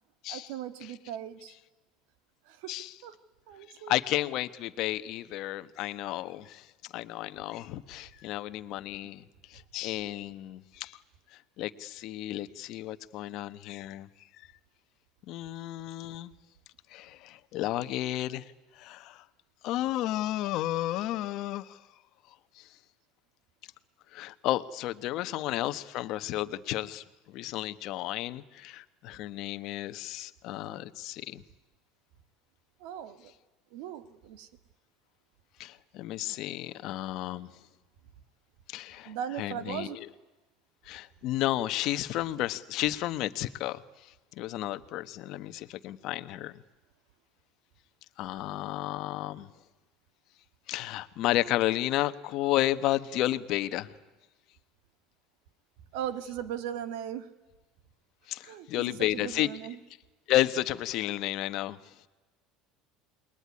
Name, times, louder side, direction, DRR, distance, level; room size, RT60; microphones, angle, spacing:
voice 1, 0.3-1.5 2.5-2.7 3.0-3.1 3.5-3.9 25.2-25.3 32.8-33.3 33.7-34.5 39.1-40.0 55.9-57.3 58.4-59.8, right 10 dB, 70° right, 12 dB, 2.0 m, -38 dB
voice 2, 3.9-6.6 6.9-9.2 9.5-11.0 11.6-14.1 15.3-16.3 16.9-18.4 18.8-19.2 19.6-21.8 24.1-31.4 35.6-37.5 38.7-39.1 39.4-40.1 40.9-43.8 44.4-46.5 48.2-49.5 50.7-53.9 58.3-59.5 60.3-61.8, left 15 dB, 45° left, 13 dB, 1.1 m, -32 dB
28.0 x 21.5 x 9.7 m, 1.2 s
cardioid pair, 170°, 0 cm